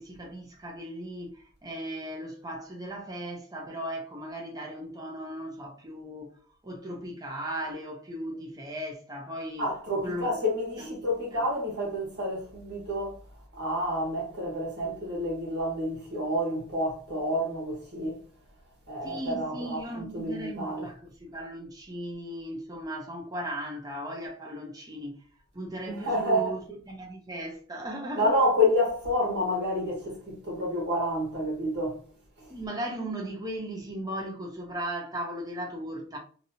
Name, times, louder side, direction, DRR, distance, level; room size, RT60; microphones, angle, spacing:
voice 1, 0.0-6.3 6.6-9.7 10.0-10.3 10.8-11.0 11.3-11.4 19.0-25.1 25.5-26.6 26.9-28.3 32.5-36.2, right 1 dB, 15° right, 0.6 m, -37 dB
voice 2, 9.6-13.2 13.5-18.2 18.9-20.9 25.9-26.6 28.2-32.0 32.4-32.5, left 1 dB, 50° right, 1.3 m, -29 dB
2.9 x 2.7 x 2.7 m
head